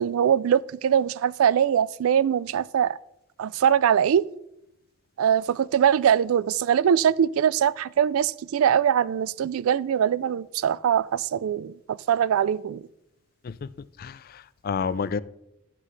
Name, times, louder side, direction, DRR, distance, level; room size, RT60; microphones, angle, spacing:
voice 1, 0.0-3.0 3.4-4.3 5.2-12.8, right 8 dB, 80° right, 0.3 m, -22 dB
voice 2, 13.4-15.2, left 5 dB, 45° left, 0.4 m, -31 dB
13.5 x 7.5 x 3.2 m
head